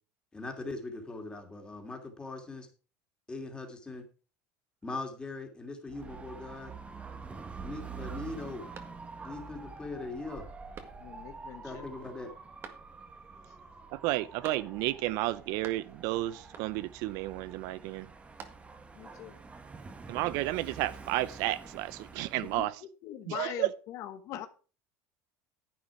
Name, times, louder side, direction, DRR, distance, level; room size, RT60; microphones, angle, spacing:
voice 1, 0.3-2.7 3.3-4.1 4.8-6.7 7.6-8.7 9.2-10.5 11.6-12.3, left 3 dB, 15° left, 2.7 m, -40 dB
Dog / Motorcycle, 5.9-22.6, right 5 dB, 20° right, 1.3 m, -47 dB
sound 1, 8.7-9.4 9.8-9.9 10.7-11.4 12.6-13.2 14.4-15.0 15.3-16.1 16.5-17.0 18.0-19.0, right 7 dB, 40° right, 1.8 m, -50 dB
voice 2, 11.0-11.9 19.0-19.4 22.3-24.5, left 11 dB, 55° left, 1.3 m, -42 dB
voice 3, 13.9-18.1 20.1-22.8 23.3-23.7, right 16 dB, 70° right, 0.6 m, -32 dB
10.5 x 8.9 x 4.8 m
supercardioid pair, 130°, 6 cm